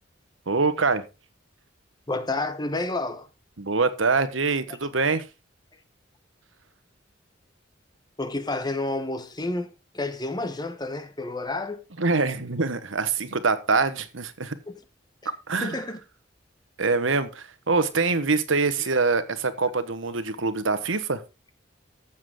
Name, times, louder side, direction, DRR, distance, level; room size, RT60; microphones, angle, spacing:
voice 1, 0.5-1.0 3.6-5.2 12.0-14.6 15.5-15.8 16.8-21.2, right 4 dB, 85° right, 1.3 m, -24 dB
voice 2, 2.1-3.3 4.7-4.8 8.2-11.8 14.7-14.8 15.6-16.0 18.8-18.9, left 2 dB, 20° left, 1.0 m, -30 dB
14.5 x 7.4 x 3.8 m
head